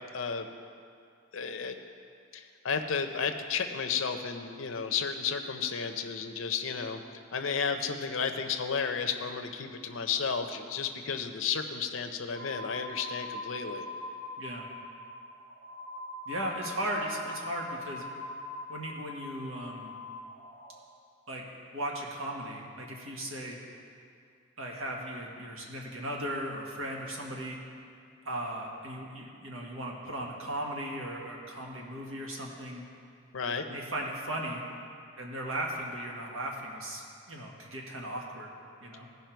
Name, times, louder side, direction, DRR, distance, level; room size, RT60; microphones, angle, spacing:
voice 1, 0.1-0.5 1.3-1.8 2.3-7.0 7.3-13.8 33.3-33.7, left 6 dB, 70° left, 5 dB, 0.6 m, -32 dB
sound 1, 12.3-20.8, left 2 dB, 60° right, 1.0 m, -42 dB
voice 2, 14.4-14.7 16.3-18.0 18.7-19.9 21.3-21.4 21.7-23.6 24.6-27.6 28.2-32.8 33.6-34.6 35.2-38.5 38.8-39.1, right 1 dB, 80° right, -1 dB, 1.6 m, -37 dB
16.0 x 5.6 x 4.5 m, 2.4 s
head